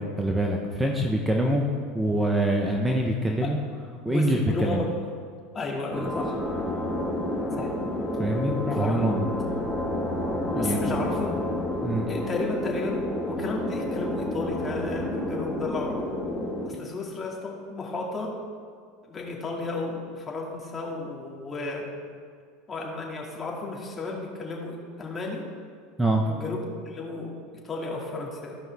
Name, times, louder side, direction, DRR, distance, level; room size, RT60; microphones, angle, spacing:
voice 1, 0.2-1.6 1.9-3.6 4.0-4.8 8.2-9.3 10.5-11.0 11.8-12.1 26.0-26.2, right 1 dB, 10° right, 1 dB, 0.9 m, -25 dB
voice 2, 4.1-5.0 5.5-6.4 7.6-7.7 8.7-9.1 10.6-11.4 12.1-16.0 16.6-18.4 19.1-21.9 22.7-25.5 26.3-27.4 27.6-28.6, left 3 dB, 25° left, -1 dB, 2.3 m, -33 dB
sound 1, 5.9-16.7, left 1 dB, 10° left, 1.4 m, -30 dB
15.0 x 5.3 x 3.5 m, 2.1 s
hypercardioid pair, 85°, 0 cm